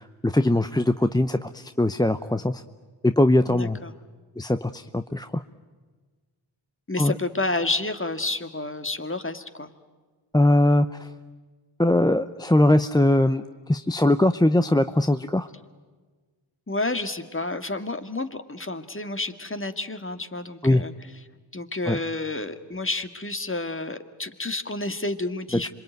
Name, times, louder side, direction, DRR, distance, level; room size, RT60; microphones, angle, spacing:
voice 1, 0.0-2.6 3.0-3.8 4.4-5.4 7.0-7.1 10.3-10.9 11.8-13.4 13.7-15.5 20.6-20.8 21.9-22.0 25.6-25.7, left 1 dB, 10° left, 10 dB, 0.7 m, -21 dB
voice 2, 3.5-3.9 6.9-9.7 16.7-20.9 21.5-25.7, left 2 dB, 25° left, 8 dB, 2.0 m, -30 dB
26.5 x 23.0 x 9.3 m, 1.4 s
cardioid pair, 45°, 49 cm